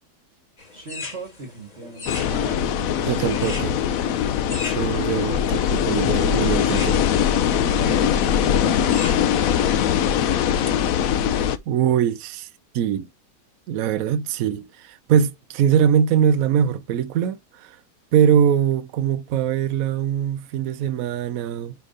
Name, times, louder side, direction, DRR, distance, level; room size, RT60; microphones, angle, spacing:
sound 1, 0.6-11.3, left 3 dB, 25° left, 1.3 m, -40 dB
voice 1, 0.7-4.7 5.3-5.4 7.7-9.1 9.5-11.4, right 3 dB, 40° right, 1.6 m, -39 dB
sound 2, 2.1-11.6, left 9 dB, 65° left, 0.9 m, -21 dB
voice 2, 3.0-3.8 4.7-7.0 11.7-12.5 12.7-13.1 13.7-17.8 18.1-21.7, right 8 dB, 65° right, 1.0 m, -22 dB
5.1 x 4.5 x 5.4 m
omnidirectional pair, 1.8 m